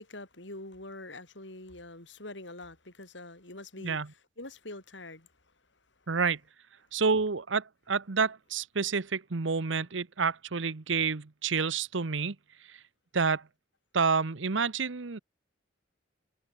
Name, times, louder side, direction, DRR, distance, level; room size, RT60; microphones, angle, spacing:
voice 1, 0.0-5.3, left 2 dB, 70° left, 5.5 m, -45 dB
voice 2, 6.1-6.4 6.9-12.4 13.1-13.4 13.9-15.2, right 5 dB, 80° right, 0.9 m, -29 dB
head